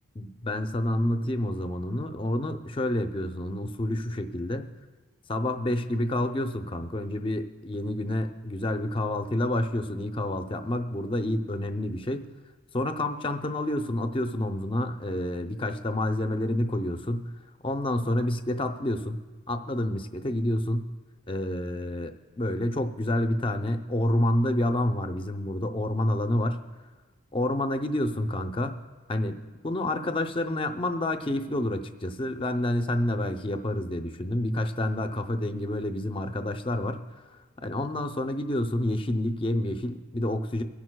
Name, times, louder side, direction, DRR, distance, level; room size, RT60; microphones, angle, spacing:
voice 1, 0.2-4.7 5.3-12.3 12.7-17.3 17.6-19.2 19.5-20.9 21.3-26.6 27.3-28.8 29.1-37.0 37.6-40.6, left 1 dB, 25° left, 7 dB, 0.5 m, -28 dB
23.5 x 11.0 x 2.2 m, 1.3 s
head